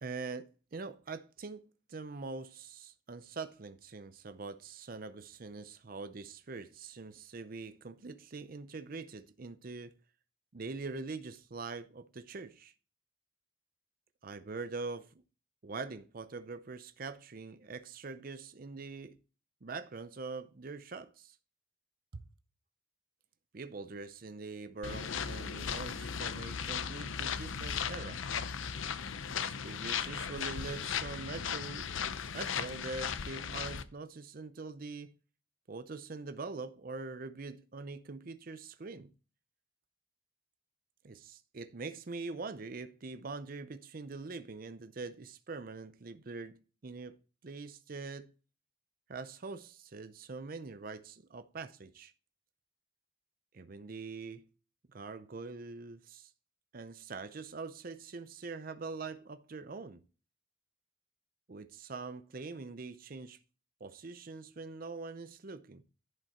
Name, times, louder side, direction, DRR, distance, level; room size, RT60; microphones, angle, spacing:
voice 1, 0.0-9.9 10.5-12.7 14.2-15.2 15.6-19.2 19.6-21.4 22.1-22.2 23.5-28.2 29.3-31.9 32.3-35.1 35.7-39.1 41.0-48.3 49.1-52.1 53.5-54.4 54.9-56.3 56.7-60.0 61.5-63.4 63.8-65.8, right 4 dB, 45° right, 0.6 m, -43 dB
sound 1, 24.8-33.8, left 7 dB, 80° left, 0.6 m, -37 dB
11.0 x 5.4 x 4.2 m
head